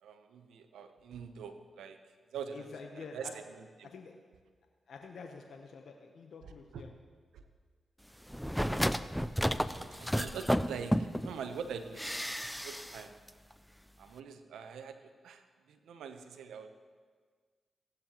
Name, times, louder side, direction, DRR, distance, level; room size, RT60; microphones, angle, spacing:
voice 1, 0.0-2.0 2.3-2.7 2.9-3.9 6.7-6.8 9.6-10.9 11.2-13.1 14.0-15.0 15.2-16.7, right 6 dB, 85° right, 8 dB, 0.8 m, -44 dB
voice 2, 2.5-3.3 3.8-4.1 4.9-6.9, left 5 dB, 70° left, 3 dB, 0.9 m, -48 dB
sound 1, 8.3-11.3 12.0-13.0 13.3-13.4, equal, ahead, 0.5 m, -32 dB
16.0 x 12.0 x 3.0 m, 1.5 s
supercardioid pair, 45°, 0 cm